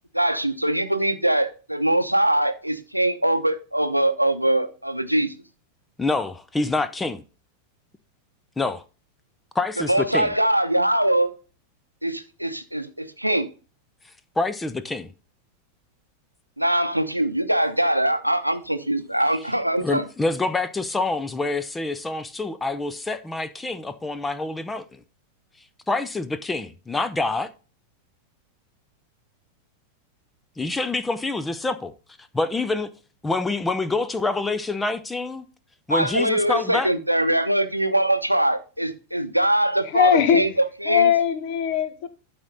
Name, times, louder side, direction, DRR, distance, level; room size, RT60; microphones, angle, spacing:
voice 1, 0.1-5.3 9.9-11.3 12.0-13.5 16.6-20.1 35.9-41.1, right 1 dB, 90° right, 0.8 m, -22 dB
voice 2, 6.0-7.2 8.6-8.8 9.5-10.3 14.4-15.1 19.8-25.0 25.9-27.5 30.6-31.9 32.3-32.9 33.2-35.4 35.9-36.9, left 3 dB, 10° left, 0.7 m, -26 dB
voice 3, 39.9-40.5 40.9-42.1, left 8 dB, 45° left, 1.2 m, -20 dB
12.0 x 4.2 x 3.9 m
figure-of-eight pair, 90°, 0 cm